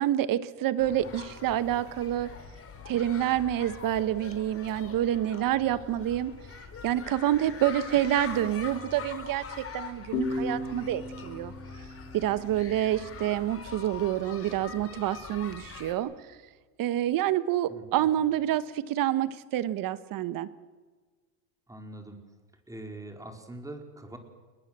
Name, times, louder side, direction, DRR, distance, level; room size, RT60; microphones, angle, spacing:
voice 1, 0.0-2.3 2.9-6.3 6.8-11.5 12.1-16.1 16.8-20.5, right 12 dB, 40° right, 14 dB, 1.4 m, -28 dB
sound 1, 0.8-15.9, left 5 dB, 25° left, 4.9 m, -43 dB
sound 2, 10.1-13.5, left 3 dB, 90° left, 3.7 m, -36 dB
voice 2, 17.7-18.2 21.7-22.2 22.7-24.2, right 1 dB, 5° right, 4 dB, 4.5 m, -43 dB
28.0 x 21.5 x 7.7 m, 1.4 s
supercardioid pair, 120°, 49 cm